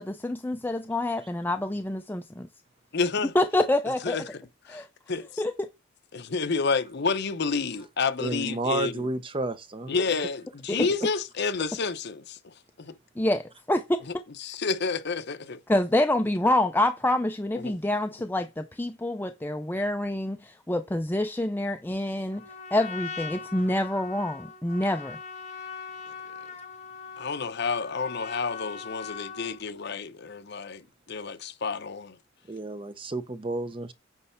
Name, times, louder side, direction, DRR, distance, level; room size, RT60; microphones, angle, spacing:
voice 1, 0.0-2.5 3.3-4.2 4.7-4.9 5.4-5.7 10.7-10.8 13.2-13.8 15.7-22.4 22.7-25.2, left 1 dB, 10° left, 0.4 m, -27 dB
voice 2, 2.9-3.3 3.9-5.4 6.1-9.1 9.9-12.9 14.4-15.6 17.5-17.8 27.2-32.2, left 4 dB, 60° left, 0.8 m, -30 dB
voice 3, 8.2-10.0 10.7-10.9 32.5-33.9, right 2 dB, 25° right, 0.7 m, -31 dB
Trumpet, 22.3-29.6, left 5 dB, 35° left, 1.8 m, -41 dB
9.5 x 3.2 x 5.7 m
head